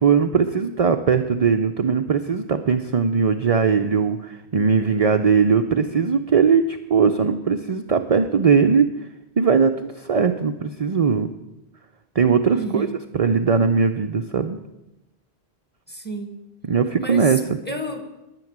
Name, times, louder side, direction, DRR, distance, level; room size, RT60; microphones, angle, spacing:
voice 1, 0.0-8.9 9.4-11.3 12.2-12.9 13.2-14.6 16.6-17.4, right 6 dB, 45° right, 6 dB, 0.6 m, -19 dB
voice 2, 12.5-12.9 15.9-16.3 17.0-17.4 17.6-18.2, right 1 dB, 10° left, 5 dB, 1.5 m, -30 dB
11.0 x 9.9 x 7.3 m, 0.96 s
omnidirectional pair, 1.1 m